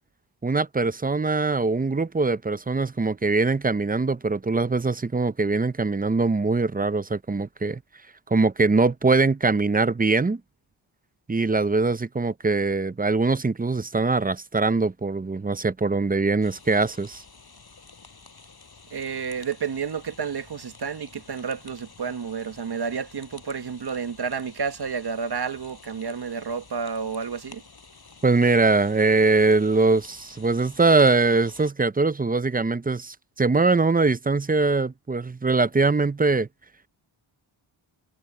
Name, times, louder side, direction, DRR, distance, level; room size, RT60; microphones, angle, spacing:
voice 1, 0.4-7.8 8.3-10.4 11.3-17.2 28.2-36.5, right 3 dB, 20° right, 0.6 m, -22 dB
sound 1, 16.4-31.7, left 4 dB, 50° left, 7.2 m, -50 dB
voice 2, 18.9-27.6, right 6 dB, 50° right, 1.3 m, -30 dB
cardioid pair, 70°, 49 cm